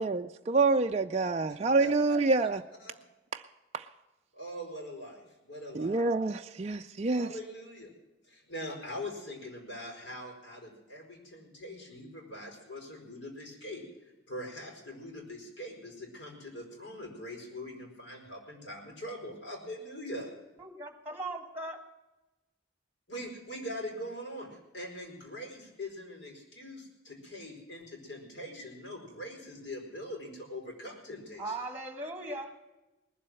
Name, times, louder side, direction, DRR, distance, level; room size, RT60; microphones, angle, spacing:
voice 1, 0.0-2.6 3.3-3.4 3.7-3.9 5.7-7.3, right 3 dB, 30° right, 4 dB, 0.4 m, -27 dB
voice 2, 4.3-6.0 7.1-7.9 8.3-13.8 14.3-20.3 23.1-31.6, left 1 dB, 70° left, 1 dB, 5.0 m, -42 dB
voice 3, 20.6-21.9 31.4-32.5, right 2 dB, 10° right, 6 dB, 1.6 m, -38 dB
20.0 x 7.6 x 7.7 m, 1.1 s
head